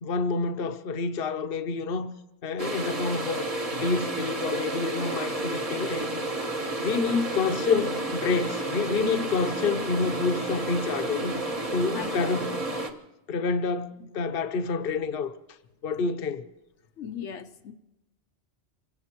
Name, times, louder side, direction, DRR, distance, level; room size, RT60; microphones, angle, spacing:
voice 1, 0.0-2.1 2.4-6.2 6.8-11.4 11.7-12.5 13.3-15.3 15.8-16.4, left 4 dB, 60° left, 1.0 m, -28 dB
sound 1, 2.6-12.9, right 2 dB, 30° right, 1.3 m, -31 dB
voice 2, 11.9-12.3 17.0-17.7, left 7 dB, 85° left, 1.2 m, -38 dB
27.0 x 17.0 x 3.0 m
omnidirectional pair, 1.2 m